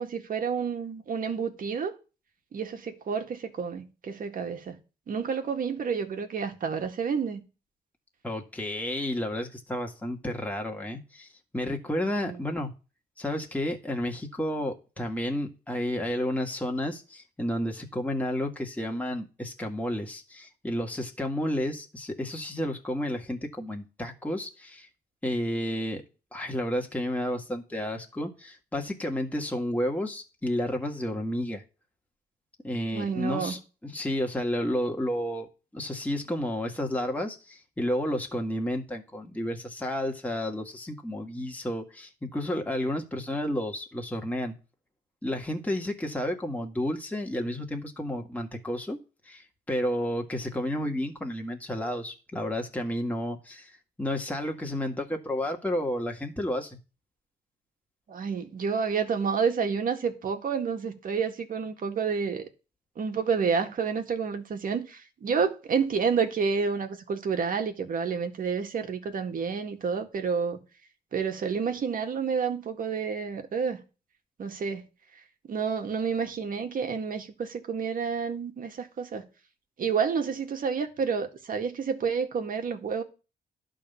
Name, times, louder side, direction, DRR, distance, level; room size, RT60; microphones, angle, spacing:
voice 1, 0.0-1.9 2.5-4.8 5.1-7.4 12.2-12.4 32.9-33.6 58.1-62.5 63.0-70.6 71.1-73.8 74.4-74.8 75.5-79.2 79.8-83.0, right 6 dB, 60° right, 1.8 m, -29 dB
voice 2, 8.2-11.3 11.5-12.7 13.2-24.9 25.2-26.0 26.3-31.6 32.6-44.5 45.2-49.0 49.2-56.8, left 1 dB, 10° left, 1.9 m, -31 dB
11.5 x 3.9 x 6.9 m
supercardioid pair, 65°, 17 cm